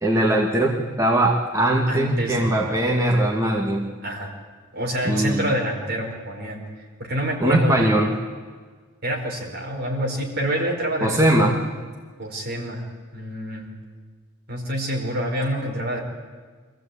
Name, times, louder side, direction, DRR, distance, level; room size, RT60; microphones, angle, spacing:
voice 1, 0.0-3.8 5.1-5.4 7.4-8.1 11.0-11.5, right 1 dB, 15° right, -2 dB, 2.0 m, -20 dB
voice 2, 1.9-3.0 4.0-4.3 4.7-7.9 9.0-11.5 12.2-12.8 13.1-13.7 14.5-16.0, right 1 dB, 55° right, 0 dB, 4.7 m, -27 dB
25.0 x 15.5 x 8.5 m, 1.5 s
head